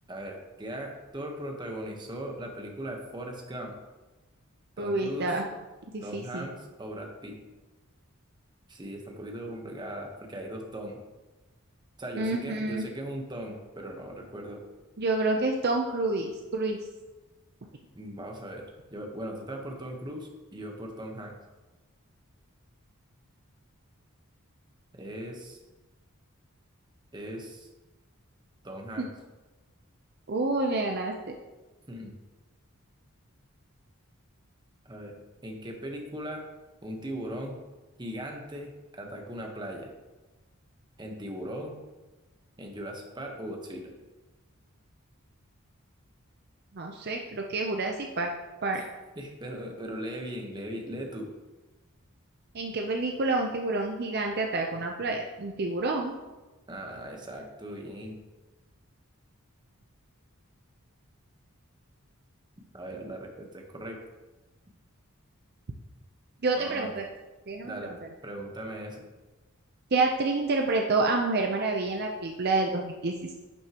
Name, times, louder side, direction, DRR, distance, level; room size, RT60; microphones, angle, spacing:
voice 1, 0.1-3.8 4.8-5.4 6.0-7.4 8.7-11.0 12.0-14.6 17.9-21.4 25.0-25.6 27.1-27.7 28.6-29.1 31.9-32.1 34.8-36.5 36.8-37.6 38.0-39.9 41.0-41.8 42.6-43.9 48.7-48.9 49.2-51.3 56.7-58.2 62.7-64.0 66.6-66.9 67.6-67.9 68.2-69.0, right 1 dB, 20° right, 2 dB, 1.1 m, -39 dB
voice 2, 4.8-5.4 5.9-6.5 12.2-12.8 15.0-16.8 29.0-29.1 30.3-31.4 46.7-48.3 48.6-48.8 52.5-56.1 66.4-67.0 67.5-67.9 69.9-73.3, right 3 dB, 50° right, 2 dB, 0.6 m, -28 dB
11.0 x 6.4 x 3.0 m, 1.2 s
head